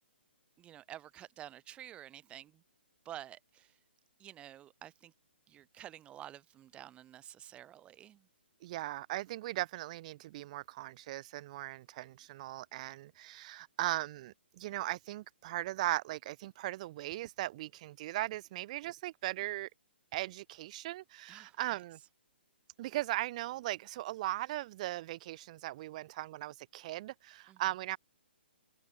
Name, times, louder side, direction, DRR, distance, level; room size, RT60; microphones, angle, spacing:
voice 1, 0.6-2.6 3.0-3.8 4.2-5.1 5.5-8.3 21.3-21.8 27.5-27.6, right 12 dB, 20° right, 7.1 m, -50 dB
voice 2, 8.6-19.7 20.1-22.0 22.8-28.0, right 16 dB, 40° right, 0.4 m, -38 dB
hypercardioid pair, 140°, 6 cm